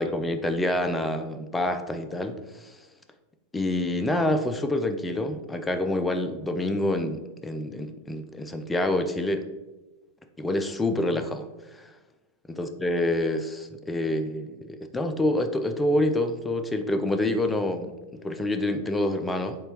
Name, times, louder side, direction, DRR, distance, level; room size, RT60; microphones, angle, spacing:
voice 1, 0.0-2.8 3.5-9.5 10.4-11.9 12.6-19.6, left 1 dB, 10° left, 8 dB, 0.3 m, -27 dB
4.3 x 3.3 x 3.0 m, 1.1 s
figure-of-eight pair, 90°, 0 cm